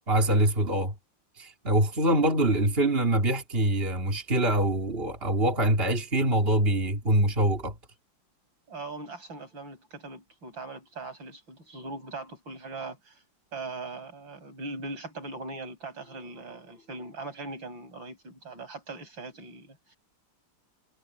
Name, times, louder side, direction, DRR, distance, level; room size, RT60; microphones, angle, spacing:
voice 1, 0.1-0.9 1.4-7.8, right 1 dB, 30° right, 3.9 m, -24 dB
voice 2, 8.7-13.2 13.5-20.0, right 3 dB, 80° right, 8.9 m, -40 dB
omnidirectional pair, 2.0 m